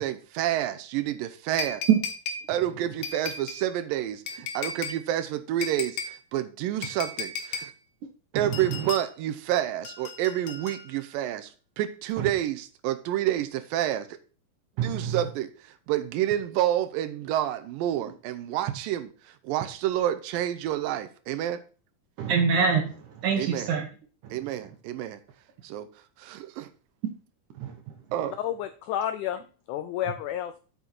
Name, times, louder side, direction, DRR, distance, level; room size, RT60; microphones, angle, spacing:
voice 1, 0.0-1.8 2.5-7.7 8.4-14.2 14.8-15.5 15.9-19.1 19.4-21.6 23.4-23.7 24.3-25.2 25.6-25.9 26.2-26.7 28.1-28.3, right 12 dB, 85° right, 2.3 m, -29 dB
sound 1, 1.6-2.5 3.0-3.6 4.3-5.0 5.6-6.2 6.8-7.7 8.5-9.1 9.8-11.1 12.1-12.2, left 5 dB, 65° left, 1.8 m, -35 dB
voice 2, 8.3-8.9 12.2-12.3 14.8-15.3 22.2-23.9 24.2-24.5 27.6-27.9, right 6 dB, 65° right, 2.3 m, -26 dB
voice 3, 28.2-29.4 29.7-30.5, left 11 dB, 85° left, 1.7 m, -30 dB
8.1 x 6.4 x 4.3 m
omnidirectional pair, 4.1 m